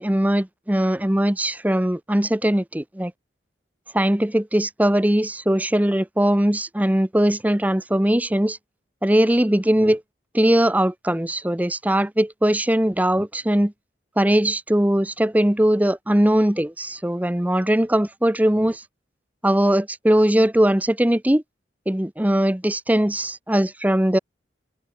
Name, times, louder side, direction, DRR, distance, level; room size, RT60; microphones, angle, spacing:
voice 1, 0.0-3.1 3.9-8.6 9.0-10.0 10.3-13.7 14.2-18.8 19.4-21.4 21.9-24.2, right 1 dB, 10° right, 0.7 m, -20 dB
head